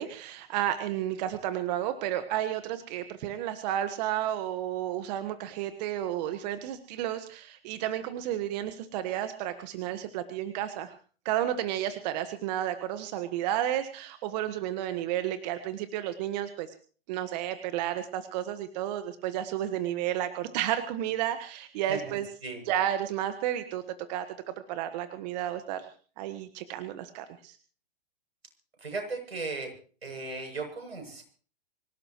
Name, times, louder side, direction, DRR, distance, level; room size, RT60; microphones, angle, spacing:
voice 1, 0.0-10.9 11.2-16.7 17.1-22.3 22.6-23.8 24.1-24.2 24.7-25.9 26.2-27.6, right 11 dB, 45° right, 9 dB, 1.5 m, -32 dB
voice 2, 21.8-22.1 22.4-22.6 28.8-29.7 30.0-31.2, right 3 dB, 85° right, 3 dB, 7.9 m, -36 dB
25.5 x 17.0 x 3.1 m, 0.41 s
hypercardioid pair, 120°, 31 cm